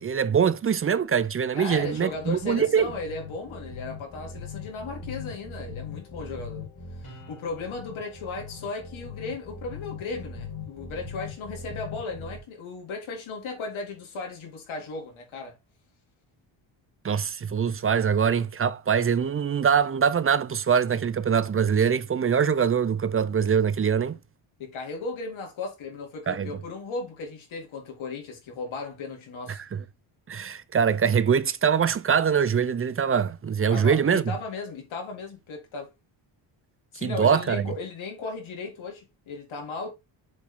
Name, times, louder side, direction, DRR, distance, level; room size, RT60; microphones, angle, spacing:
voice 1, 0.0-2.9 17.0-24.2 26.3-26.5 29.5-29.8 30.3-34.4 37.0-37.7, right 7 dB, 25° right, 0.6 m, -23 dB
voice 2, 1.6-6.7 7.0-15.6 24.6-29.6 33.7-35.9 36.9-39.9, left 3 dB, 75° left, 3.5 m, -36 dB
sound 1, 1.7-12.4, left 4 dB, 50° left, 3.8 m, -41 dB
7.2 x 4.9 x 3.7 m
cardioid pair, 125°, 48 cm